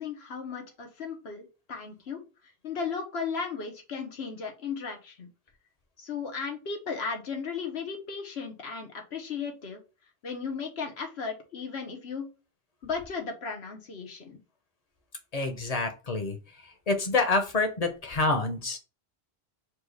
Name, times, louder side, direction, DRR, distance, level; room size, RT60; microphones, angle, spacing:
voice 1, 0.0-2.2 2.6-5.3 6.0-9.8 10.2-12.3 12.8-14.4, left 5 dB, 85° left, 4 dB, 1.4 m, -35 dB
voice 2, 15.3-16.4 16.9-18.8, left 3 dB, 40° left, 5 dB, 0.9 m, -27 dB
4.6 x 2.4 x 4.7 m, 0.30 s
omnidirectional pair, 1.0 m